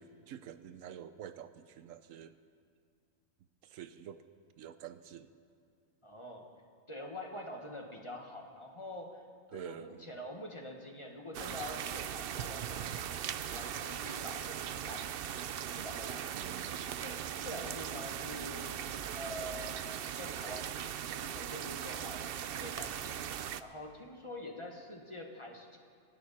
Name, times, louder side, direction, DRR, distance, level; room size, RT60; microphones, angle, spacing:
voice 1, 0.0-2.4 3.6-4.2 4.6-5.3 9.5-10.2 16.3-17.0 17.5-17.9, right 9 dB, 80° right, 12 dB, 1.0 m, -48 dB
voice 2, 6.0-6.5 6.9-9.2 9.5-15.2 15.7-16.3 17.0-18.7 19.1-19.8 20.1-20.7 21.1-23.2 23.6-25.8, left 1 dB, 25° left, 2 dB, 1.6 m, -46 dB
sound 1, 11.3-23.6, right 9 dB, 60° right, 0.6 m, -39 dB
28.0 x 11.0 x 4.3 m, 2.3 s
omnidirectional pair, 1.4 m